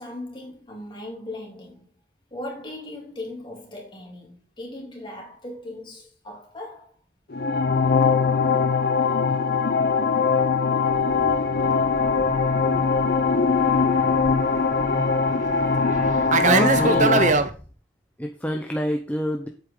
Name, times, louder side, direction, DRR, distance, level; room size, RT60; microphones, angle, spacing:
voice 1, 0.0-1.9 2.3-6.9, left 1 dB, 25° left, 3.1 m, -38 dB
sound 1, 7.3-17.3, left 5 dB, 60° left, 0.8 m, -21 dB
Fixed-wing aircraft airplane, 11.0-17.5, right 4 dB, 45° right, 0.8 m, -25 dB
voice 2, 16.4-17.3 18.2-19.5, equal, 10° left, 0.9 m, -26 dB
8.3 x 8.3 x 3.9 m
head